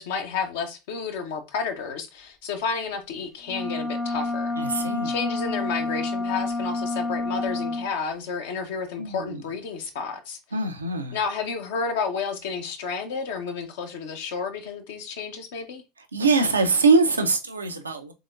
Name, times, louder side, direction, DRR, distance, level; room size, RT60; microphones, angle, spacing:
voice 1, 0.0-10.4 11.1-15.8, left 5 dB, 65° left, 0.8 m, -31 dB
sound 1, 3.5-7.9, left 2 dB, 5° left, 0.6 m, -28 dB
voice 2, 4.6-5.1 9.0-9.4 10.5-11.2 16.1-18.1, right 3 dB, 85° right, 0.6 m, -23 dB
3.8 x 3.5 x 2.5 m
figure-of-eight pair, 80°, 0 cm